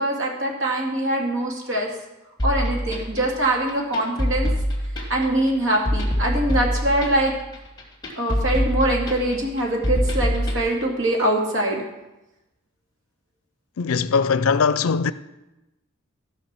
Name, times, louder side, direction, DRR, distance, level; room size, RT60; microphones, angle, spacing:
voice 1, 0.0-1.9 2.4-4.5 5.1-7.3 8.2-11.8, right 1 dB, 65° right, 2.2 m, -23 dB
sound 1, 2.4-10.6, equal, 20° left, 2.5 m, -25 dB
voice 2, 13.8-15.1, left 5 dB, 75° left, 0.5 m, -20 dB
14.0 x 5.6 x 6.0 m
head